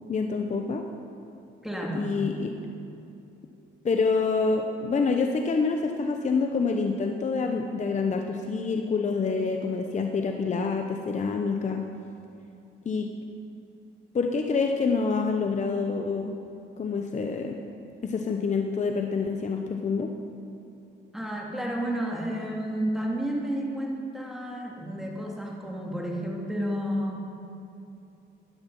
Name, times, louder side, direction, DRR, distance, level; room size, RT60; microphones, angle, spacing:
voice 1, 0.1-0.8 1.9-2.5 3.8-11.8 12.8-13.1 14.1-16.3 16.8-17.6 18.0-20.1, left 4 dB, 35° left, 3 dB, 0.8 m, -27 dB
voice 2, 1.6-2.2 21.1-27.2, equal, ahead, -2 dB, 2.4 m, -31 dB
13.0 x 10.0 x 5.4 m, 2.7 s
cardioid pair, 90°, 20 cm